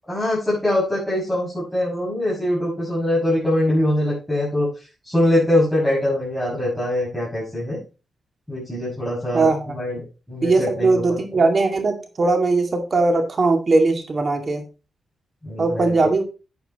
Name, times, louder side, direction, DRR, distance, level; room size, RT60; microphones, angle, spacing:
voice 1, 0.1-7.8 8.5-11.4 15.4-16.1, left 1 dB, ahead, -8 dB, 6.3 m, -23 dB
voice 2, 10.4-14.6 15.6-16.2, right 3 dB, 45° right, 4 dB, 2.3 m, -19 dB
9.4 x 9.2 x 3.0 m, 0.31 s
cardioid pair, 85°, 0 cm